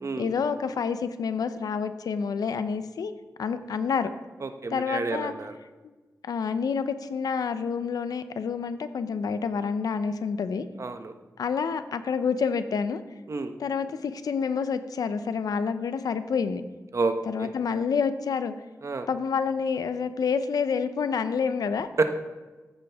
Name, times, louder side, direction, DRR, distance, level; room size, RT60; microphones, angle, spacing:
voice 1, 0.2-3.1 3.4-4.1 4.7-5.3 5.8-5.9 6.2-10.6 11.4-13.0 13.6-16.6 17.3-18.5 19.1-21.9, left 6 dB, 85° left, 11 dB, 0.6 m, -28 dB
voice 2, 4.4-5.6 10.8-11.1 13.3-13.5 16.9-17.5 18.8-19.1 22.0-22.2, right 3 dB, 55° right, 7 dB, 1.0 m, -29 dB
13.5 x 9.7 x 3.5 m, 1.3 s
cardioid pair, 60°, 6 cm